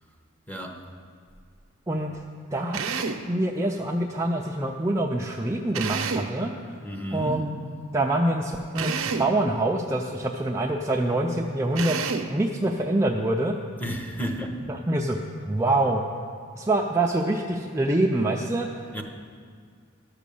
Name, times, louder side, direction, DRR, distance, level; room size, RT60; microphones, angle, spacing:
voice 1, 0.5-0.8 6.8-7.5 13.8-14.6 18.9-19.0, equal, 10° left, 2 dB, 0.9 m, -32 dB
voice 2, 2.5-6.5 7.1-7.5 7.9-12.0 12.3-13.6 14.2-14.3 14.7-15.2 15.4-16.0 16.6-18.7, right 1 dB, 15° right, 0 dB, 0.4 m, -25 dB
Drill, 2.7-3.3 5.7-6.4 8.7-9.4 11.7-12.4, right 5 dB, 80° right, 0.7 m, -29 dB
12.0 x 6.2 x 6.9 m, 2.1 s
head